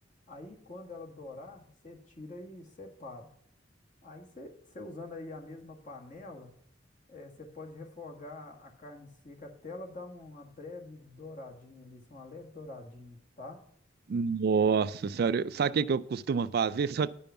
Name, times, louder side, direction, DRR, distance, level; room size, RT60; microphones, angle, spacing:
voice 1, 0.3-3.3 4.0-6.5 7.1-13.6, left 2 dB, 45° left, 2 dB, 1.8 m, -45 dB
voice 2, 14.1-17.1, right 5 dB, 55° right, 15 dB, 0.3 m, -27 dB
10.0 x 5.3 x 6.9 m, 0.67 s
head